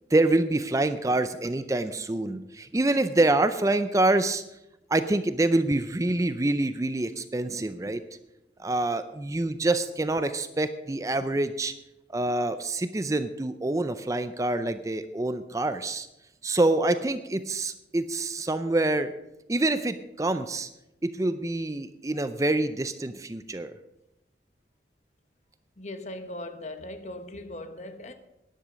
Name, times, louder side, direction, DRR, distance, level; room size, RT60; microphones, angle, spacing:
voice 1, 0.1-4.4 4.9-8.0 8.6-11.7 12.1-16.1 16.4-19.1 19.5-20.7 21.0-23.8, right 2 dB, 20° right, 0.4 m, -26 dB
voice 2, 25.8-28.1, left 1 dB, 40° left, 1.0 m, -39 dB
13.0 x 10.5 x 5.1 m
head